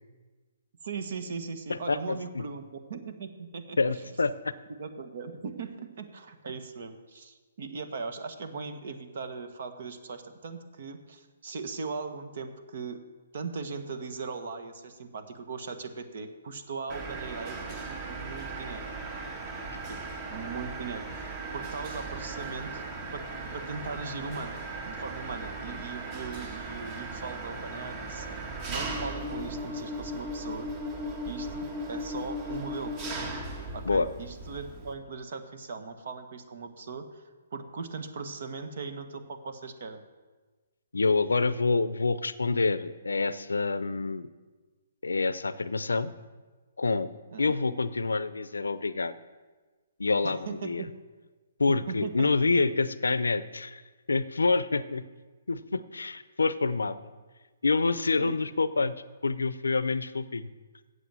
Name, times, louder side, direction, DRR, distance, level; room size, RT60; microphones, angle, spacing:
voice 1, 0.8-2.6 2.9-4.1 4.8-13.0 13.3-18.9 19.9-20.0 20.3-22.8 23.1-23.3 23.5-24.6 24.9-28.3 28.7-30.7 31.3-33.0 33.7-37.2 37.5-40.0 47.3-47.5 50.2-50.7 51.7-52.3 58.2-58.5, right 4 dB, 60° right, 8 dB, 1.3 m, -39 dB
voice 2, 1.7-2.4 3.8-4.5 33.8-34.1 40.9-44.3 45.0-46.1 46.8-47.1 47.4-49.1 50.0-50.8 51.6-53.8 54.1-55.0 55.5-57.0 57.6-59.0 59.2-60.5, left 3 dB, 90° left, 15 dB, 0.6 m, -27 dB
Mechanisms, 16.9-34.9, right 1 dB, 30° right, 1.6 m, -37 dB
8.3 x 7.8 x 7.6 m, 1.3 s
hypercardioid pair, 140°, 0 cm